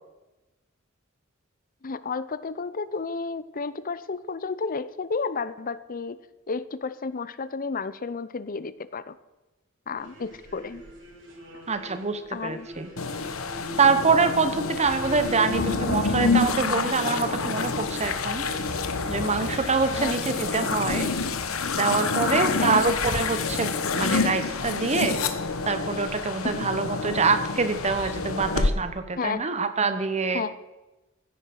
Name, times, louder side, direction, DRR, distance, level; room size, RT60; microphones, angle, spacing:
voice 1, 1.8-6.2 6.5-9.2 9.9-10.8 12.3-12.7 19.9-20.1 22.3-22.8 26.6-26.7 29.2-29.5 30.3-30.5, left 4 dB, 45° left, 16 dB, 0.6 m, -32 dB
sound 1, 10.0-18.8, equal, 65° right, 4.3 m, -42 dB
voice 2, 11.7-12.9 13.8-18.5 19.1-21.1 21.8-25.2 25.7-30.4, right 4 dB, 35° right, 10 dB, 1.0 m, -25 dB
sound 2, 13.0-28.7, left 4 dB, 90° left, 1.3 m, -28 dB
15.5 x 9.8 x 6.5 m, 1.1 s
head